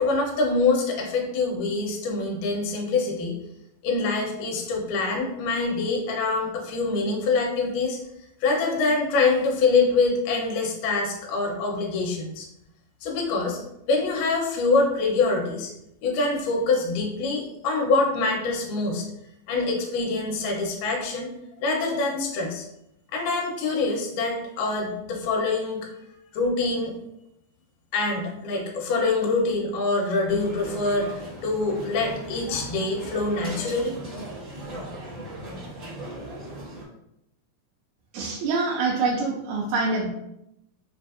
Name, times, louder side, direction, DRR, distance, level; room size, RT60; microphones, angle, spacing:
voice 1, 0.0-3.4 3.8-8.0 8.4-12.5 13.0-13.6 13.9-15.7 16.0-19.0 19.5-21.3 21.6-22.6 23.1-25.9 26.3-27.0 27.9-34.0, left 3 dB, 75° left, 0 dB, 2.3 m, -25 dB
sound 1, 30.3-36.8, right 1 dB, 60° right, 0.8 m, -38 dB
voice 2, 38.1-40.1, right 3 dB, 80° right, -2 dB, 2.1 m, -25 dB
5.3 x 2.5 x 2.4 m, 0.82 s
omnidirectional pair, 3.9 m